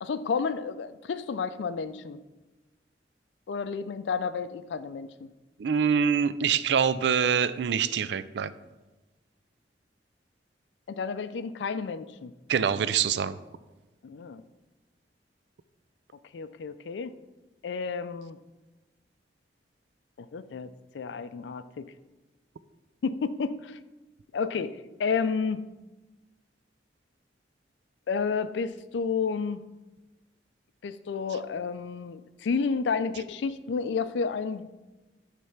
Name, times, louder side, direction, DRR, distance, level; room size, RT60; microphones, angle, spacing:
voice 1, 0.0-2.2 3.5-5.3 10.9-12.3 14.0-14.4 16.3-17.1 17.6-18.4 20.2-20.7 20.9-21.9 23.0-23.8 24.3-25.6 28.1-29.6 30.8-34.7, left 5 dB, 80° left, 13 dB, 0.4 m, -31 dB
voice 2, 5.6-8.5 12.5-13.4, right 7 dB, 70° right, 15 dB, 0.4 m, -25 dB
9.3 x 3.4 x 5.7 m, 1.1 s
head